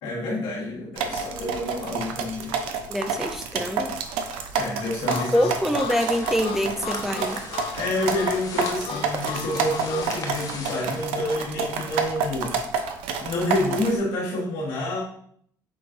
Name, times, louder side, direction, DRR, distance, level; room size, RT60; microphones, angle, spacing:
voice 1, 0.0-2.5 4.5-5.5 7.8-12.6 13.2-15.0, left 1 dB, 90° left, -4 dB, 1.5 m, -28 dB
sound 1, 1.0-14.0, right 5 dB, 85° right, 0.5 m, -29 dB
voice 2, 2.9-4.0 5.1-7.4, equal, 5° right, 6 dB, 0.5 m, -25 dB
Harmonica, 5.1-10.1, left 8 dB, 70° left, 0.5 m, -35 dB
sound 2, 5.9-11.0, left 3 dB, 40° left, 0.9 m, -38 dB
5.7 x 3.2 x 2.5 m, 0.63 s
supercardioid pair, 75°, 9 cm